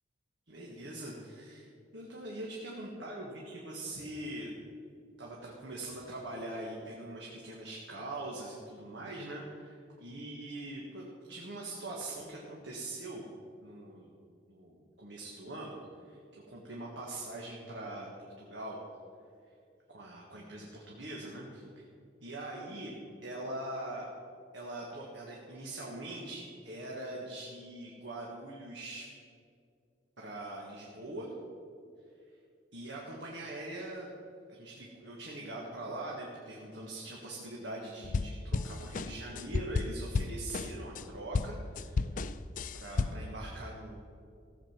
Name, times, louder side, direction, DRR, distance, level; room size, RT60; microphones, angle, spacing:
voice 1, 0.5-1.7 1.9-4.5 5.2-13.2 13.6-14.1 14.5-15.8 16.0-16.2 16.5-18.1 18.4-18.8 19.9-21.9 22.2-23.0 23.2-24.1 24.5-29.1 30.2-31.3 32.7-34.1 34.5-42.1 42.7-44.0, right 1 dB, 80° right, -3 dB, 1.8 m, -42 dB
sound 1, 38.0-41.1 41.3-43.3, left 4 dB, 45° left, 0.4 m, -33 dB
15.5 x 7.7 x 6.0 m, 2.4 s
head